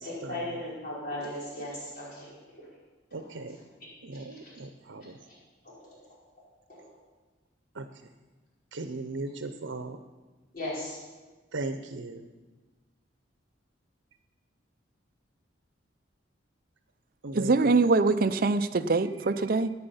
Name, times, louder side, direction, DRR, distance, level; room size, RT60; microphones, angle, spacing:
voice 1, 0.0-2.7 3.2-3.3 4.1-4.5 5.3-5.4 6.7-6.9 10.5-11.0, left 1 dB, 50° left, -7 dB, 4.9 m, -37 dB
voice 2, 3.1-3.6 4.1-4.4 4.9-5.0 7.8-7.9 8.7-10.0 11.5-12.2 17.2-17.5, right 2 dB, 85° right, 8 dB, 0.8 m, -36 dB
voice 3, 17.3-19.7, right 3 dB, 45° right, 10 dB, 0.5 m, -24 dB
14.0 x 9.7 x 5.7 m, 1.3 s
head